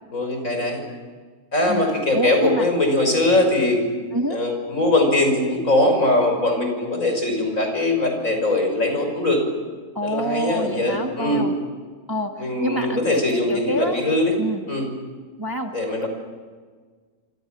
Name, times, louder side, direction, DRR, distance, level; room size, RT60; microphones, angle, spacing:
voice 1, 0.1-0.8 1.5-3.8 4.3-9.4 10.0-11.4 12.4-14.4 14.7-14.9 15.7-16.1, left 1 dB, 60° left, 4 dB, 6.5 m, -21 dB
voice 2, 1.7-2.7 4.1-4.4 10.0-11.5 12.1-14.0 14.4-14.6 15.4-15.7 16.0-16.1, equal, 15° right, 3 dB, 1.7 m, -27 dB
27.5 x 26.5 x 7.6 m, 1.5 s
omnidirectional pair, 1.6 m